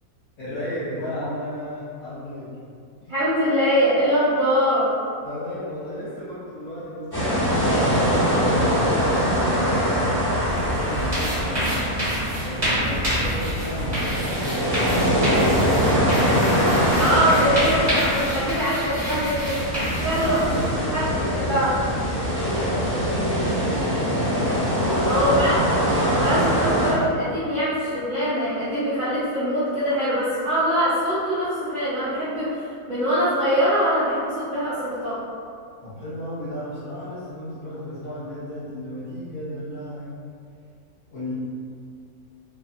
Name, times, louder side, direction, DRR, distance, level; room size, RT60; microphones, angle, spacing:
voice 1, 0.4-2.5 3.0-3.1 5.2-8.1 8.5-11.9 12.4-14.1 14.3-16.6 20.1-22.0 22.3-25.4 35.8-40.1 41.1-41.3, left 1 dB, 70° left, -12 dB, 1.1 m, -34 dB
voice 2, 3.1-4.9 17.0-19.6 20.0-20.6 20.9-21.0 21.3-21.7 25.1-25.6 26.1-32.5 32.9-35.2, equal, 70° right, -12 dB, 0.4 m, -23 dB
sound 1, 7.1-26.9, equal, 20° left, 0.7 m, -23 dB
sound 2, 10.5-20.7, equal, 30° right, 1.1 m, -28 dB
2.7 x 2.3 x 2.6 m, 2.3 s
omnidirectional pair, 1.6 m